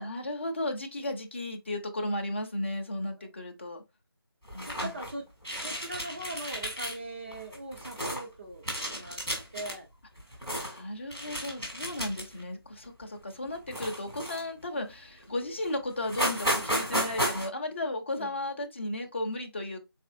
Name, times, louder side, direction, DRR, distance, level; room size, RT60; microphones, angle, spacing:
voice 1, 0.0-3.8 4.5-4.9 10.6-19.8, left 1 dB, 30° left, 0.7 m, -34 dB
sound 1, 4.5-5.1 5.4-6.9 7.3-8.2 8.6-9.7 10.2-10.8 11.1-12.4 12.8-13.0 13.7-14.6 15.2-15.3 15.6-15.7 16.0-17.5, equal, 5° right, 0.8 m, -33 dB
voice 2, 4.6-5.2 5.5-9.2 9.5-9.9 18.1-18.3, right 2 dB, 30° right, 0.9 m, -41 dB
4.2 x 3.2 x 2.6 m
figure-of-eight pair, 165°, 12 cm